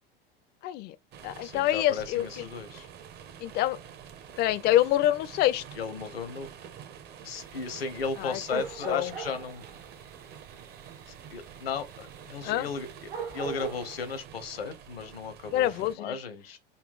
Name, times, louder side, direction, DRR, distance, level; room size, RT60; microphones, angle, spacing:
voice 1, 0.6-1.0 1.2-2.5 3.4-3.8 4.4-5.6 8.2-9.1 12.4-12.7 15.5-16.2, left 13 dB, 35° left, 0.4 m, -26 dB
sound 1, 1.1-15.9, right 8 dB, 35° right, 0.6 m, -48 dB
voice 2, 1.4-2.9 5.8-6.5 7.2-9.6 11.3-16.6, left 5 dB, 80° left, 0.8 m, -35 dB
sound 2, 7.3-14.2, right 7 dB, 75° right, 0.9 m, -42 dB
4.0 x 2.2 x 3.3 m
figure-of-eight pair, 80°, 29 cm